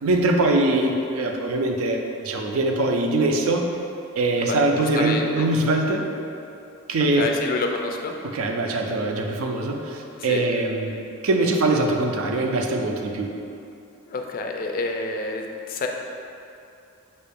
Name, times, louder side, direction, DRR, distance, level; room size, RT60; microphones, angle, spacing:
voice 1, 0.0-3.7 4.2-6.0 6.9-7.3 8.2-11.0 11.2-13.3, right 2 dB, 75° right, 2 dB, 0.4 m, -22 dB
voice 2, 4.5-5.5 7.2-8.2 10.2-10.5 14.1-15.9, left 3 dB, 40° left, 3 dB, 0.3 m, -28 dB
5.4 x 2.5 x 3.4 m, 2.7 s
head